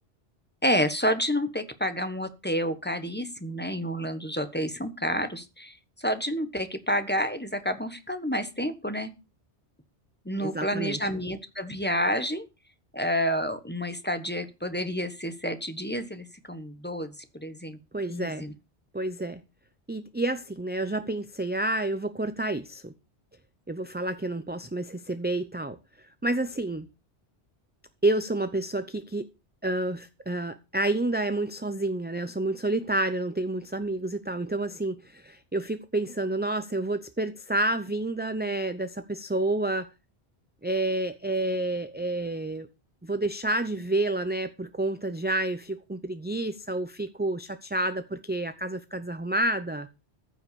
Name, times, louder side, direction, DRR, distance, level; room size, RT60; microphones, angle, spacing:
voice 1, 0.6-9.1 10.2-12.4 12.9-17.8 18.1-18.5, equal, 10° left, 1.3 m, -29 dB
voice 2, 10.4-11.0 17.9-18.5 18.9-19.4 19.9-22.9 23.7-25.8 26.2-26.9 28.0-29.3 29.6-39.9 40.6-42.7 43.0-49.9, right 2 dB, 10° right, 0.6 m, -29 dB
14.5 x 5.8 x 6.9 m
omnidirectional pair, 1.1 m